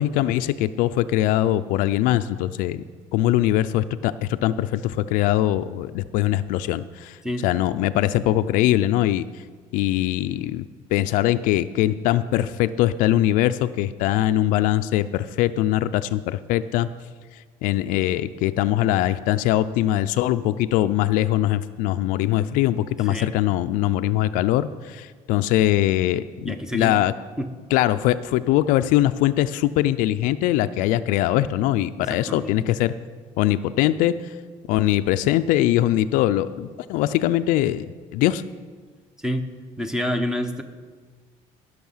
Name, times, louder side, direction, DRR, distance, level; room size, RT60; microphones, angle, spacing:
voice 1, 0.0-2.8 3.1-7.2 7.4-9.4 9.7-10.7 10.9-16.9 17.3-27.1 27.7-32.9 33.4-34.3 34.7-37.9 38.1-38.4, left 14 dB, 80° left, 11 dB, 0.4 m, -22 dB
voice 2, 7.2-7.7 23.1-23.3 26.4-27.0 27.4-27.5 32.0-32.5 39.2-39.5 39.8-40.6, equal, 5° right, 8 dB, 0.7 m, -28 dB
15.0 x 6.4 x 5.6 m, 1.5 s
cardioid pair, 135°, 14 cm